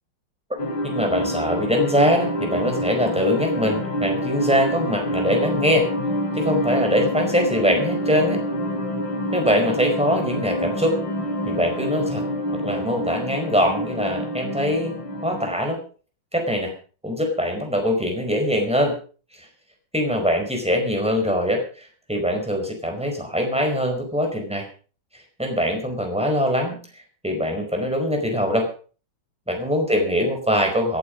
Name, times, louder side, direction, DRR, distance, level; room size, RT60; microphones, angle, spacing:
voice 1, 0.5-5.9 6.3-8.4 9.3-11.0 11.5-12.2 12.5-14.9 15.2-15.8 16.3-16.7 17.0-18.9 19.4-19.5 19.9-21.6 22.1-24.6 25.4-26.8 27.2-28.7 29.5-31.0, equal, 5° right, 3 dB, 4.8 m, -22 dB
sound 1, 0.6-15.6, equal, 70° left, 3.8 m, -27 dB
18.0 x 11.5 x 5.3 m, 0.40 s
omnidirectional pair, 2.2 m